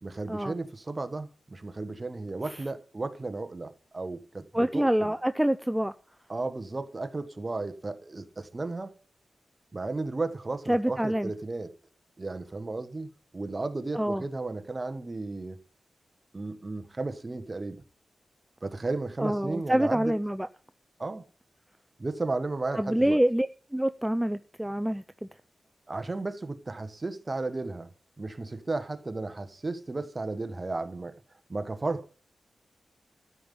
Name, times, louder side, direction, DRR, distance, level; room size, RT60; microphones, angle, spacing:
voice 1, 0.0-5.1 6.3-8.9 9.7-11.7 12.2-15.6 16.3-17.8 18.6-20.1 21.0-21.2 22.0-23.2 25.9-27.9 28.2-31.2 31.5-32.1, right 3 dB, 30° right, 1.2 m, -34 dB
voice 2, 4.5-5.9 10.7-11.3 13.9-14.2 19.2-20.5 22.7-23.5 23.7-25.0, right 1 dB, 5° right, 0.5 m, -26 dB
13.0 x 5.4 x 9.2 m
wide cardioid pair, 90°, 0 cm